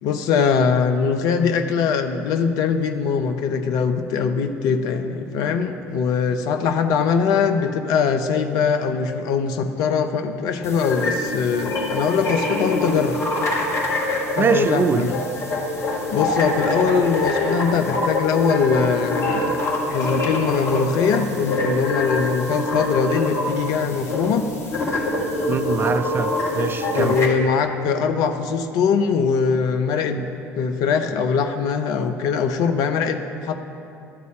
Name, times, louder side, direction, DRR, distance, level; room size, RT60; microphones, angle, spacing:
voice 1, 0.0-13.2 14.3-15.2 16.1-24.5 26.9-30.2 30.6-33.6, left 6 dB, 55° left, 7 dB, 0.6 m, -22 dB
sound 1, 10.6-27.3, left 2 dB, 35° left, 1.5 m, -25 dB
voice 2, 14.3-15.1 25.5-27.2, right 5 dB, 25° right, 11 dB, 0.4 m, -23 dB
12.0 x 4.1 x 7.5 m, 2.7 s
figure-of-eight pair, 60°, 8 cm